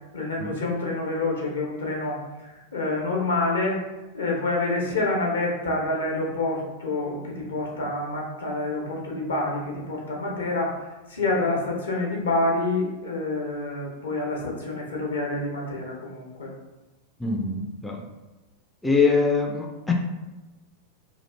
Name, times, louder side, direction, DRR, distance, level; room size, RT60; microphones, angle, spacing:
voice 1, 0.1-2.2 2.7-3.8 4.1-10.7 11.1-16.5, left 2 dB, 70° left, -2 dB, 0.8 m, -27 dB
voice 2, 17.2-18.0 18.8-19.9, left 4 dB, 10° left, 0 dB, 0.4 m, -23 dB
2.8 x 2.4 x 3.3 m, 1.1 s
figure-of-eight pair, 90°, 0 cm